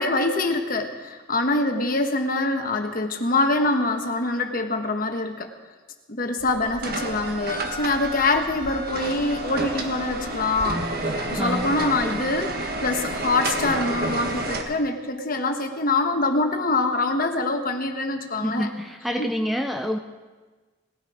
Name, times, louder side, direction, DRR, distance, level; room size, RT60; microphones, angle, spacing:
voice 1, 0.0-5.5 6.1-12.5 12.8-18.7 19.2-19.3, left 2 dB, 45° left, 5 dB, 1.3 m, -24 dB
sound 1, 6.4-14.6, right 2 dB, 50° right, 1.5 m, -30 dB
voice 2, 11.4-11.8 18.4-20.0, equal, ahead, 4 dB, 0.5 m, -27 dB
19.0 x 12.0 x 5.0 m, 1.3 s
head